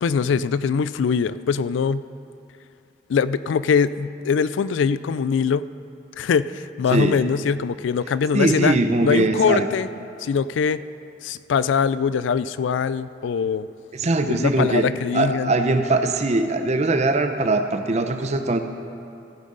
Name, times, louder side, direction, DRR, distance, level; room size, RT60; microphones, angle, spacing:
voice 1, 0.0-2.0 3.1-5.7 6.2-9.9 10.2-10.8 11.2-13.7 14.3-15.5, left 6 dB, 85° left, 16 dB, 0.3 m, -22 dB
voice 2, 8.3-9.7 13.9-14.9 15.1-18.6, right 2 dB, 40° right, 7 dB, 0.6 m, -21 dB
15.0 x 9.3 x 3.9 m, 2.5 s
head